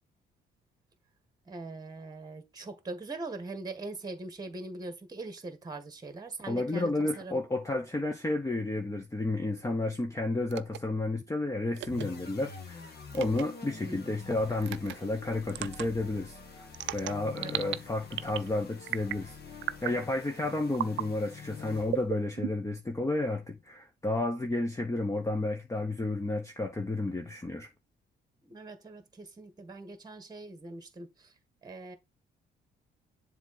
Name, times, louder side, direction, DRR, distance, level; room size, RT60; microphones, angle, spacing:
voice 1, 1.5-7.4 13.8-14.1 17.2-17.8 28.4-31.3 31.6-32.0, right 3 dB, 20° right, 1.3 m, -42 dB
voice 2, 6.5-16.7 16.9-19.4 19.8-27.7, left 2 dB, 15° left, 0.9 m, -31 dB
sound 1, 10.5-10.8 11.7-12.0 13.1-13.4 14.6-14.9 15.5-15.9 16.7-17.8 18.1-18.5 18.9-19.2 19.6-20.0 20.7-21.1 21.9-22.8, right 13 dB, 70° right, 0.5 m, -35 dB
sound 2, 11.8-22.2, left 5 dB, 55° left, 1.7 m, -47 dB
7.3 x 3.5 x 4.0 m
cardioid pair, 90°, 20 cm